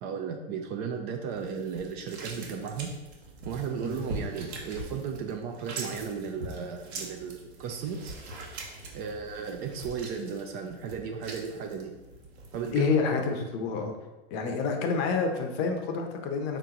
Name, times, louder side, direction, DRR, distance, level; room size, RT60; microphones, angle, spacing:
voice 1, 0.0-2.9 3.5-8.1 8.9-11.9 12.5-13.2, right 6 dB, 30° right, 3 dB, 0.4 m, -35 dB
sound 1, 1.3-12.7, right 2 dB, 75° right, 1.2 m, -42 dB
voice 2, 12.7-13.9 14.3-16.6, left 5 dB, 35° left, 4 dB, 0.7 m, -28 dB
4.7 x 2.9 x 3.8 m, 1.2 s
hypercardioid pair, 125°, 32 cm